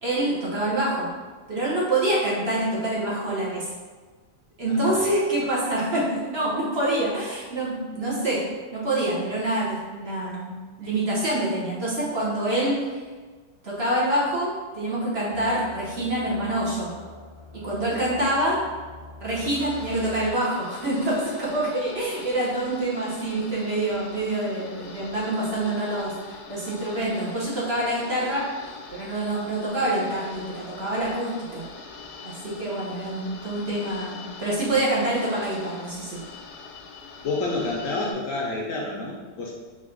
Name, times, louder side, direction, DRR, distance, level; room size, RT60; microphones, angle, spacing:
voice 1, 0.0-1.1 1.5-3.7 4.6-8.4 8.7-10.5 10.8-13.0 13.6-16.9 17.6-18.6 19.2-28.5 28.9-31.6 32.2-36.2, right 1 dB, 45° right, -6 dB, 1.0 m, -26 dB
voice 2, 4.6-5.0 37.2-39.5, left 2 dB, 65° left, -3 dB, 0.9 m, -29 dB
sound 1, 15.3-20.3, left 3 dB, 5° right, 0.5 m, -44 dB
sound 2, 19.5-38.1, left 4 dB, 85° left, 1.1 m, -43 dB
4.2 x 2.6 x 3.7 m, 1.4 s
omnidirectional pair, 1.7 m